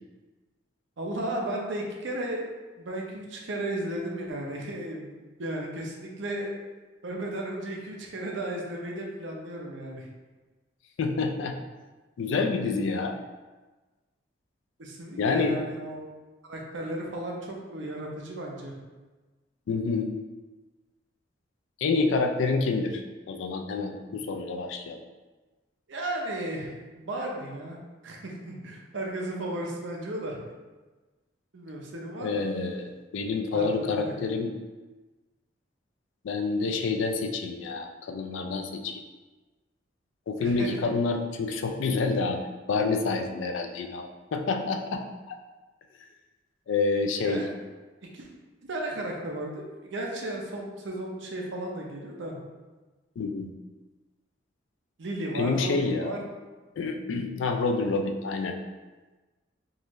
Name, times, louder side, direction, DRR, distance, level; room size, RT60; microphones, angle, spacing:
voice 1, 1.0-2.5 2.8-6.5 7.0-10.1 14.8-16.2 16.4-18.7 25.9-30.4 31.5-32.5 33.5-34.1 40.4-40.9 47.1-47.5 48.0-48.3 48.7-52.4 55.0-56.2, right 1 dB, 70° right, 0 dB, 0.6 m, -35 dB
voice 2, 11.0-11.5 12.2-13.2 15.2-15.6 19.7-20.1 21.8-25.0 32.2-34.5 36.2-39.0 40.3-45.4 46.7-47.5 53.2-53.5 55.3-56.2 56.8-58.6, left 4 dB, 75° left, 5 dB, 0.4 m, -28 dB
3.8 x 2.5 x 3.0 m, 1.2 s
head